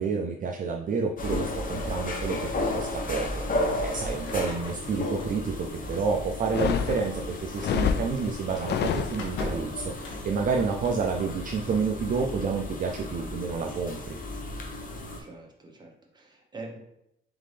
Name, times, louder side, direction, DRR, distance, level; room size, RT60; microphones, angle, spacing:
voice 1, 0.0-14.2, right 5 dB, 45° right, 2 dB, 0.4 m, -29 dB
sound 1, 1.2-15.2, left 1 dB, 45° left, 0.9 m, -34 dB
sound 2, 4.2-11.1, left 2 dB, 80° left, 1.0 m, -42 dB
sound 3, 6.4-9.6, left 7 dB, 60° left, 0.4 m, -29 dB
voice 2, 15.2-16.8, right 2 dB, 20° right, 0 dB, 1.1 m, -44 dB
3.7 x 3.6 x 3.3 m, 0.81 s
cardioid pair, 90°, 20 cm